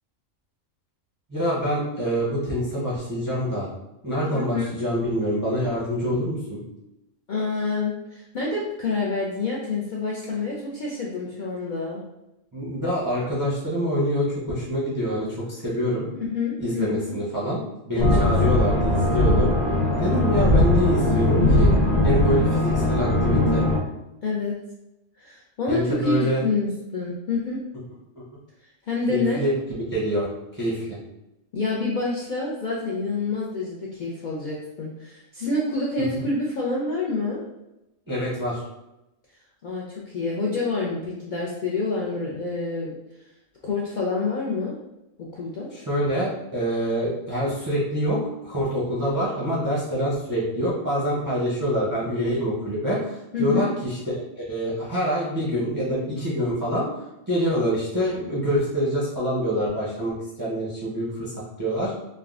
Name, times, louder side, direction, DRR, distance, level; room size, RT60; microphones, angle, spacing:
voice 1, 1.3-3.7 4.0-6.6 12.5-16.1 16.6-19.5 20.0-21.7 22.0-23.7 25.7-26.4 29.1-29.5 29.9-31.0 36.1-36.2 38.1-38.6 45.7-56.9 57.3-61.9, equal, 25° right, -8 dB, 0.4 m, -26 dB
voice 2, 4.3-4.7 7.3-12.0 16.2-17.2 18.0-18.2 24.2-24.5 25.2-27.6 28.9-29.4 31.5-37.4 39.6-42.9 43.6-44.7 45.2-45.7 53.3-53.7, left 3 dB, 85° left, -5 dB, 0.4 m, -27 dB
sound 1, 18.0-23.8, left 2 dB, 40° left, 0.8 m, -20 dB
3.4 x 2.1 x 2.4 m, 0.93 s
omnidirectional pair, 1.4 m